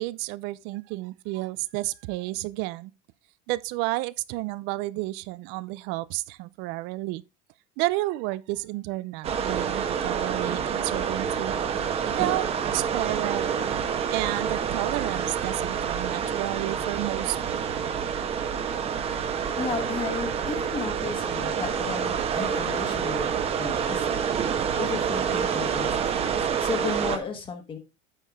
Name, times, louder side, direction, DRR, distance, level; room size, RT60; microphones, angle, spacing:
voice 1, 0.0-2.9 3.5-7.2 7.8-11.5 12.0-12.4 12.7-13.7 14.1-18.0, right 19 dB, 65° right, 0.6 m, -31 dB
sound 1, 9.2-27.2, right 7 dB, 30° right, 1.1 m, -28 dB
voice 2, 19.6-27.8, left 5 dB, 25° left, 1.4 m, -34 dB
9.0 x 6.5 x 3.5 m
cardioid pair, 150°, 19 cm